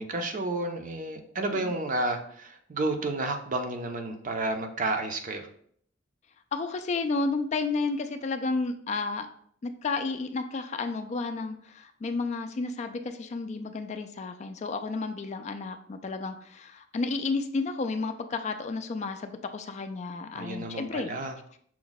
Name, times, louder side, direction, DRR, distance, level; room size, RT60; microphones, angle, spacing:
voice 1, 0.0-5.5 20.3-21.4, right 2 dB, 40° right, 5 dB, 0.5 m, -31 dB
voice 2, 6.5-9.3 9.6-21.1, left 3 dB, 35° left, 8 dB, 0.3 m, -32 dB
5.9 x 2.2 x 3.9 m, 0.62 s
head